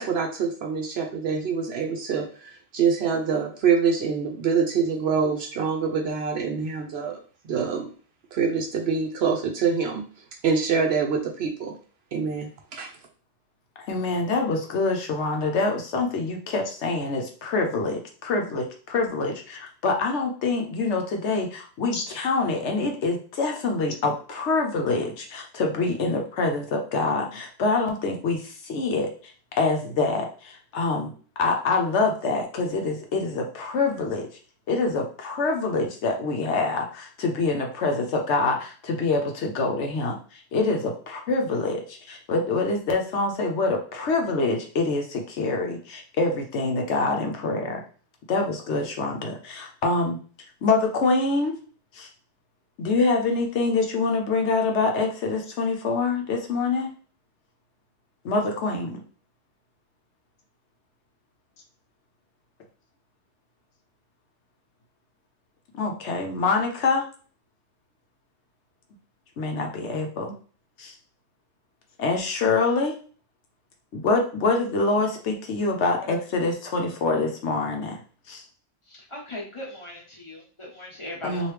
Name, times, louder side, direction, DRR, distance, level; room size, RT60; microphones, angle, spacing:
voice 1, 0.0-7.2 7.4-7.9 8.3-10.0 10.4-11.7 12.1-12.9, right 6 dB, 65° right, 3 dB, 0.8 m, -25 dB
voice 2, 13.9-29.1 29.6-31.1 31.4-34.3 34.7-47.8 48.3-50.2 50.6-51.6 51.9-52.1 52.8-56.9 58.2-59.0 65.8-67.0 69.4-70.3 70.8-70.9 72.0-72.9 73.9-78.0 78.3-78.4 81.2-81.5, left 3 dB, 70° left, 2 dB, 0.9 m, -25 dB
voice 3, 78.9-81.5, left 1 dB, 25° left, -3 dB, 1.1 m, -39 dB
3.0 x 2.6 x 3.2 m, 0.40 s
omnidirectional pair, 1.3 m